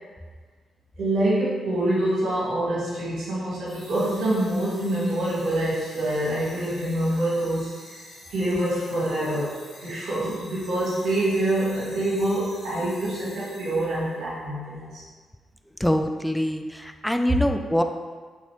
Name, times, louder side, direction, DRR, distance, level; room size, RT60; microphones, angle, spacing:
voice 1, 1.0-8.0 8.3-15.0, right 1 dB, 75° right, -9 dB, 1.4 m, -26 dB
sound 1, 3.7-14.2, left 1 dB, 65° left, 1.5 m, -47 dB
voice 2, 15.8-17.8, equal, 5° left, 6 dB, 0.4 m, -24 dB
4.0 x 3.5 x 3.0 m, 1.4 s
hypercardioid pair, 45°, 0 cm